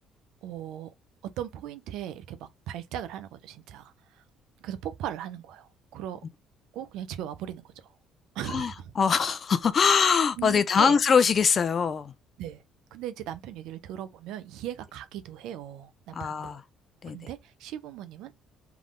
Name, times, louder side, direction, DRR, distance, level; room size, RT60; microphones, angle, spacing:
voice 1, 0.4-0.9 1.4-4.2 4.6-6.2 6.7-7.9 8.3-8.9 10.4-11.0 12.4-12.6 12.9-16.6 17.0-18.3, right 11 dB, 80° right, 0.8 m, -38 dB
voice 2, 8.5-12.1 16.1-16.6 17.0-17.2, left 6 dB, 45° left, 0.6 m, -23 dB
3.6 x 3.3 x 3.7 m
supercardioid pair, 75°, 0 cm